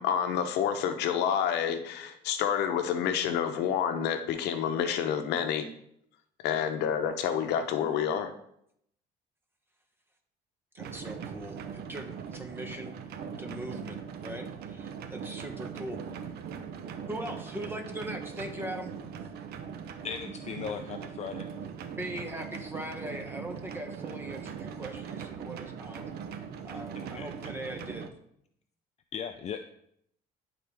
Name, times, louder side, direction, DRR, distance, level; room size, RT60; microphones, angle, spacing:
voice 1, 0.0-5.7 6.4-8.3, left 8 dB, 85° left, 8 dB, 0.7 m, -28 dB
voice 2, 10.7-12.9 13.4-16.0 17.1-18.9 22.0-26.0 26.6-28.1, right 1 dB, 15° right, 4 dB, 1.1 m, -40 dB
sound 1, 10.8-28.1, right 7 dB, 70° right, 0.7 m, -40 dB
voice 3, 20.0-21.5 26.9-27.3 29.1-29.6, left 7 dB, 40° left, 8 dB, 0.4 m, -37 dB
10.5 x 3.9 x 3.4 m, 0.73 s
cardioid pair, 110°, 17 cm